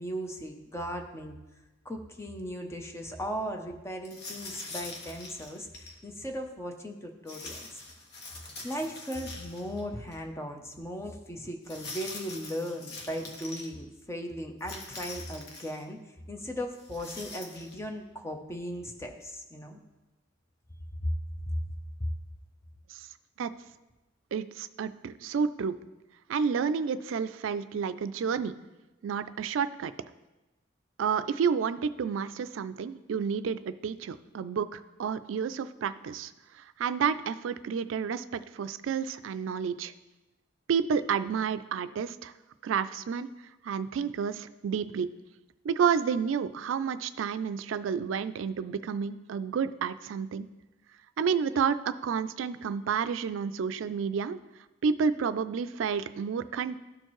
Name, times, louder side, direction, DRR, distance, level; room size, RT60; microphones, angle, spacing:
voice 1, 0.0-1.4 1.8-7.7 8.6-16.0 16.3-19.8 21.0-21.1 21.5-21.6 22.0-22.1, equal, 15° left, 4 dB, 0.7 m, -37 dB
sound 1, 4.0-6.0 7.3-9.8 10.1-10.2 11.6-13.7 14.6-15.8 16.8-17.8, left 3 dB, 60° left, 1.2 m, -43 dB
voice 2, 24.3-25.8 26.3-28.5 29.0-29.9 31.0-36.3 36.6-39.9 40.7-42.3 42.6-43.3 43.6-45.1 45.6-50.5 51.2-54.4 54.8-56.8, right 6 dB, 75° right, 13 dB, 0.3 m, -30 dB
12.5 x 4.4 x 3.1 m, 1.1 s
head